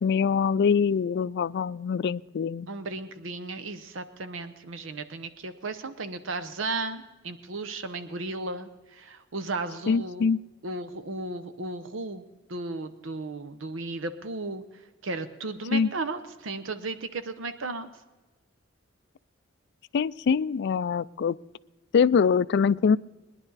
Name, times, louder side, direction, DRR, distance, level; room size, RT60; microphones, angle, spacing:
voice 1, 0.0-2.7 9.9-10.4 15.7-15.9 19.9-21.4 21.9-23.0, left 6 dB, 60° left, 18 dB, 0.4 m, -24 dB
voice 2, 2.7-10.3 10.6-12.2 12.5-17.9, right 3 dB, 70° right, 10 dB, 0.8 m, -35 dB
21.0 x 10.5 x 4.0 m, 1.2 s
head